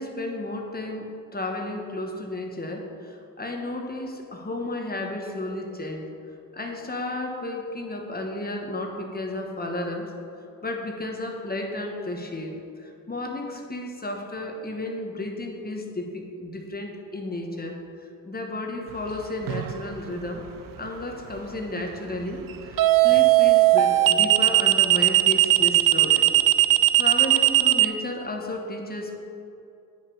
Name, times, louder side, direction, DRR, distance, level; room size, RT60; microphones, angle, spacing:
voice 1, 0.0-6.1 6.5-10.1 10.6-20.5 20.8-26.3 27.0-29.2, left 2 dB, 30° left, 2 dB, 1.2 m, -33 dB
sound 1, 19.5-19.8 22.8-27.9, right 16 dB, 80° right, 0.5 m, -17 dB
9.0 x 6.0 x 4.9 m, 2.6 s
cardioid pair, 70°, 33 cm